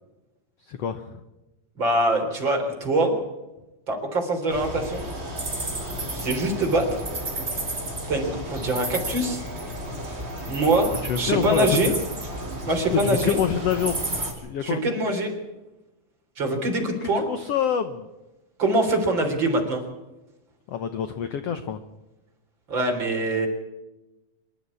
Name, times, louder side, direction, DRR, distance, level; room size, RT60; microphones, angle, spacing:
voice 1, 0.6-1.2 11.0-11.9 12.9-14.8 17.0-18.1 20.7-21.8, left 8 dB, 75° left, 10 dB, 1.4 m, -27 dB
voice 2, 1.8-3.1 3.9-5.0 6.1-7.0 8.1-9.4 10.1-10.2 10.4-10.9 11.1-11.9 12.7-13.4 14.6-15.3 16.4-17.3 18.6-19.8 22.7-23.5, right 1 dB, 30° right, 3 dB, 4.0 m, -24 dB
sound 1, 4.5-14.3, right 1 dB, 15° right, 4.4 m, -32 dB
25.5 x 12.5 x 8.4 m, 1.0 s
omnidirectional pair, 4.1 m